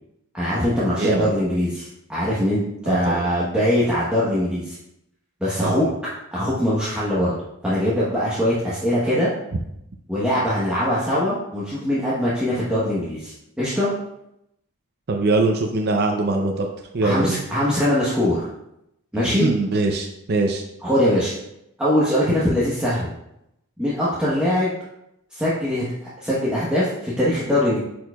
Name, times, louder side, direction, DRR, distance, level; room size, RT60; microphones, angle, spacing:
voice 1, 0.3-4.8 5.4-5.9 6.3-7.3 7.6-9.3 10.1-13.9 17.0-18.4 19.1-19.5 20.8-21.3 21.8-23.1 23.8-24.7 25.3-25.9 26.2-27.8, left 1 dB, 5° right, -10 dB, 1.0 m, -22 dB
voice 2, 1.0-1.3 2.9-3.2 5.6-5.9 15.1-16.7 16.9-17.4 19.2-20.6, right 2 dB, 45° right, 2 dB, 0.5 m, -22 dB
9.2 x 4.6 x 2.3 m, 0.82 s
head